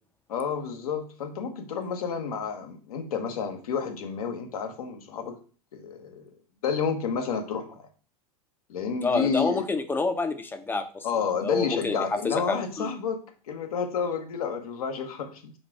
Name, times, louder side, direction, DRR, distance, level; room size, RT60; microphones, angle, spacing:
voice 1, 0.3-5.4 5.7-6.3 6.6-7.9 8.7-9.6 11.0-13.2 13.5-15.5, left 6 dB, 80° left, 5 dB, 1.0 m, -30 dB
voice 2, 9.0-11.1 11.4-12.0 12.2-12.9, left 3 dB, 10° left, 8 dB, 0.5 m, -28 dB
4.1 x 2.5 x 4.5 m, 0.40 s
hypercardioid pair, 105°, 19 cm